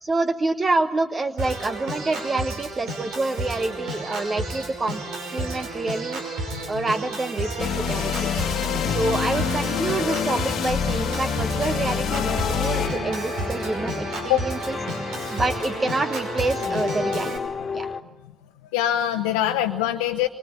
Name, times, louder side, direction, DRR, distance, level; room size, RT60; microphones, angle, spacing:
voice 1, 0.0-5.0 5.3-6.2 6.7-8.3 8.8-14.8 15.3-17.4 17.7-17.9, right 3 dB, 35° right, 10 dB, 1.2 m, -27 dB
Organ, 1.4-17.4, right 2 dB, 75° right, 5.5 m, -31 dB
sound 1, 7.6-12.9, left 8 dB, 65° left, 1.3 m, -26 dB
sound 2, 12.1-18.0, left 5 dB, 50° left, 1.7 m, -32 dB
voice 2, 18.7-20.3, left 12 dB, 85° left, 3 dB, 0.9 m, -23 dB
26.0 x 24.5 x 9.3 m, 1.0 s
hypercardioid pair, 45°, 0 cm